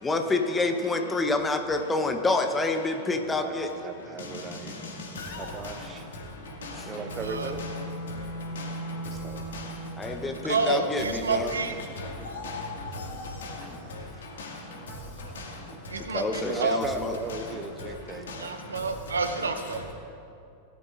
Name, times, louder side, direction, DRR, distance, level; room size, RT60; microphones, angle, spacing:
voice 1, 0.0-3.7 10.0-11.5 16.1-17.1, left 3 dB, 15° left, 1.0 m, -27 dB
voice 2, 3.3-4.7 5.4-6.0 6.9-7.6 9.2-9.4 11.7-11.8 14.9-15.3 16.4-18.5, right 4 dB, 20° right, 0.8 m, -38 dB
voice 3, 5.2-5.8 6.6-6.7 7.6-7.7 8.6-8.7 9.5-9.6 10.5-10.6 11.5-11.6 12.0-12.7 12.9-13.5 14.4-14.5 15.4-15.5 16.3-16.4 17.3-17.4 18.3-18.4 19.2-19.3, left 3 dB, 65° left, 2.1 m, -37 dB
Bowed string instrument, 6.5-10.3, right 1 dB, 55° right, 3.1 m, -38 dB
voice 4, 10.4-11.7 15.9-16.8 18.4-19.9, right 4 dB, 70° right, 0.9 m, -29 dB
17.5 x 12.5 x 2.6 m
figure-of-eight pair, 90°, 0 cm